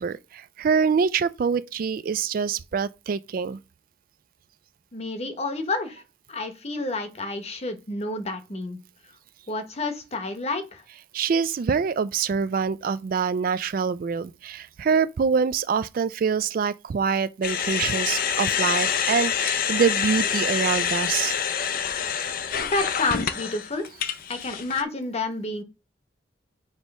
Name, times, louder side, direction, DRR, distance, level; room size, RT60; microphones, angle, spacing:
voice 1, 0.0-3.6 11.1-21.3, right 6 dB, 50° right, 0.3 m, -25 dB
voice 2, 4.9-6.0 6.3-8.8 9.5-10.8 22.6-23.9 24.3-25.6, left 3 dB, 35° left, 1.0 m, -29 dB
sound 1, 17.4-24.8, left 8 dB, 55° left, 0.5 m, -26 dB
8.1 x 3.1 x 5.3 m
head